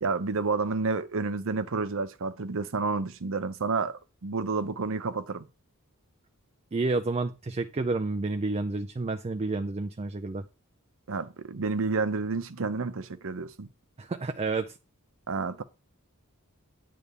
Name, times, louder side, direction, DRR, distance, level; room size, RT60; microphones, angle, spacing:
voice 1, 0.0-5.5 11.1-13.7 15.3-15.6, right 4 dB, 65° right, 0.8 m, -30 dB
voice 2, 6.7-10.5 14.0-14.7, right 3 dB, 30° right, 0.4 m, -30 dB
9.5 x 3.3 x 6.9 m
head